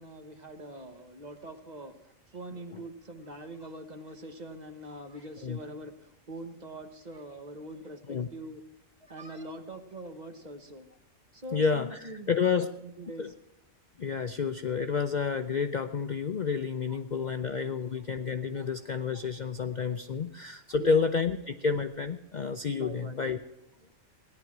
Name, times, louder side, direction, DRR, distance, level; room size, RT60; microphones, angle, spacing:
voice 1, 0.0-8.6 9.0-10.9 11.3-13.3 16.9-17.0 17.6-17.7 18.2-19.3 19.5-20.2 20.7-21.0 22.7-23.2 23.8-24.0, right 1 dB, 35° right, 7 dB, 1.3 m, -44 dB
voice 2, 11.5-12.7 13.2-13.3 14.0-23.4, left 5 dB, 45° left, 8 dB, 0.6 m, -30 dB
17.5 x 11.0 x 6.0 m, 0.96 s
omnidirectional pair, 1.3 m